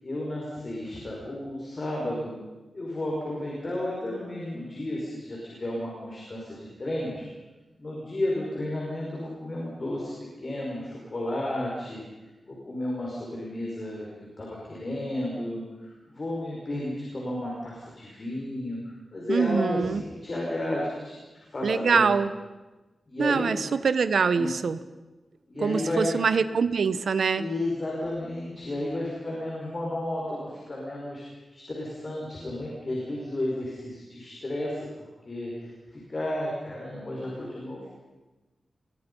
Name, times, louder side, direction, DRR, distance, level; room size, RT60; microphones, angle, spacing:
voice 1, 0.0-2.4 2.7-7.3 7.8-10.1 10.4-12.0 12.5-22.2 23.1-23.6 24.3-24.6 25.5-26.2 27.4-31.2 31.5-37.9, left 1 dB, 30° left, -3 dB, 5.5 m, -32 dB
voice 2, 19.3-20.0 21.6-22.3 23.2-24.8 25.6-27.4, right 5 dB, 70° right, 13 dB, 1.2 m, -24 dB
30.0 x 22.0 x 5.6 m, 1.2 s
wide cardioid pair, 175°, 0 cm